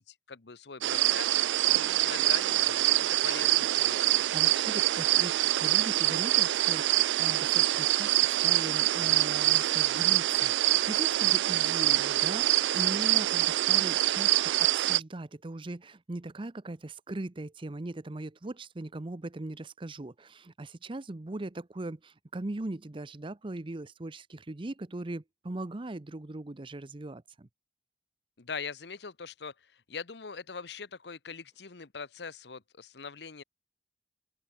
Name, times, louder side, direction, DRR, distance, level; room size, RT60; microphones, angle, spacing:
voice 1, 0.0-1.4 1.6-4.0 28.4-33.4, left 5 dB, 70° left, 1.0 m, -42 dB
sound 1, 0.8-15.0, right 16 dB, 85° right, 0.3 m, -25 dB
voice 2, 4.1-27.5, right 2 dB, 30° right, 0.7 m, -39 dB
head